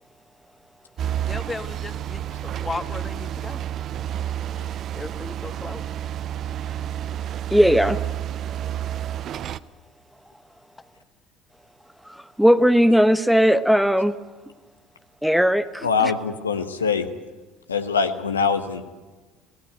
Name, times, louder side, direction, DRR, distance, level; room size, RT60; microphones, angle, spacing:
voice 1, 1.0-3.7 4.9-5.8, left 3 dB, 20° left, 8 dB, 1.6 m, -35 dB
sound 1, 1.0-9.6, right 11 dB, 45° right, 0.7 m, -30 dB
voice 2, 7.5-8.0 12.1-14.2 15.2-15.9, equal, ahead, 11 dB, 1.0 m, -18 dB
voice 3, 15.8-17.1 17.7-18.8, left 5 dB, 85° left, 6 dB, 1.2 m, -23 dB
26.5 x 18.0 x 8.0 m, 1.3 s
figure-of-eight pair, 60°, 0 cm